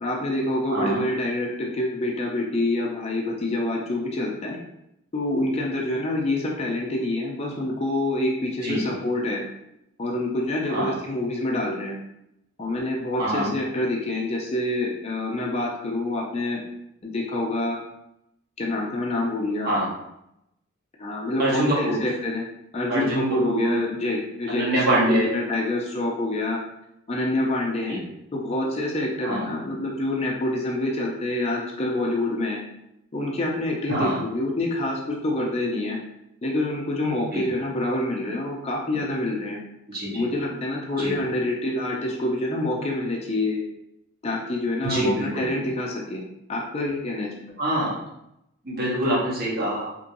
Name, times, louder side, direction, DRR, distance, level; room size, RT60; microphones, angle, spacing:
voice 1, 0.0-4.6 5.1-9.4 10.0-12.0 12.6-16.6 17.0-17.8 18.6-19.7 21.0-22.5 22.7-26.6 27.1-28.0 28.3-32.6 33.1-36.0 36.4-39.6 40.1-43.6 44.2-46.2 46.5-47.3, left 1 dB, 30° left, -1 dB, 0.4 m, -26 dB
voice 2, 13.2-13.5 19.6-19.9 21.4-22.0 22.9-23.7 24.5-25.3 27.9-28.0 29.2-29.4 33.9-34.2 37.3-37.4 39.9-40.2 41.0-41.1 44.8-45.5 47.6-48.0 48.6-49.9, right 1 dB, 50° right, -5 dB, 1.0 m, -25 dB
2.9 x 2.6 x 2.6 m, 0.82 s
head